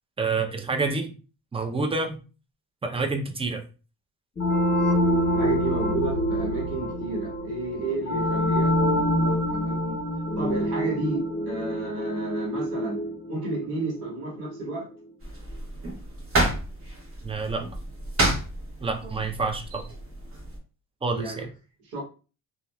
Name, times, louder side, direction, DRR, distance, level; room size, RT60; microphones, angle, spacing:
voice 1, 0.2-1.1 1.5-2.2 2.8-3.6 17.2-17.6 18.8-19.9 21.0-21.5, right 3 dB, 15° right, 4 dB, 0.5 m, -28 dB
sound 1, 4.4-14.8, equal, 30° left, 1.1 m, -26 dB
voice 2, 5.3-10.0 10.4-13.0 13.3-14.9 21.1-21.5 21.9-22.0, right 2 dB, 90° right, -3 dB, 1.2 m, -32 dB
sound 2, 15.2-20.6, right 1 dB, 35° right, 1.0 m, -30 dB
2.7 x 2.4 x 2.2 m, 0.34 s
cardioid pair, 95°, 38 cm